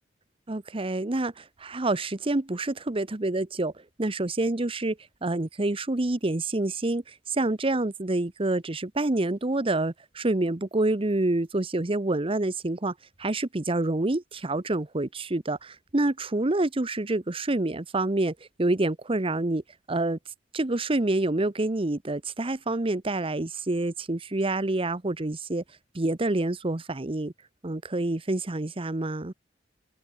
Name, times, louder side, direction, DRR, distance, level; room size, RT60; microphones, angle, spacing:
voice 1, 0.5-3.7 4.0-12.9 13.2-19.6 19.9-20.2 20.5-25.6 25.9-27.3 27.6-29.3, right 2 dB, 30° right, 0.9 m, -27 dB
open air
head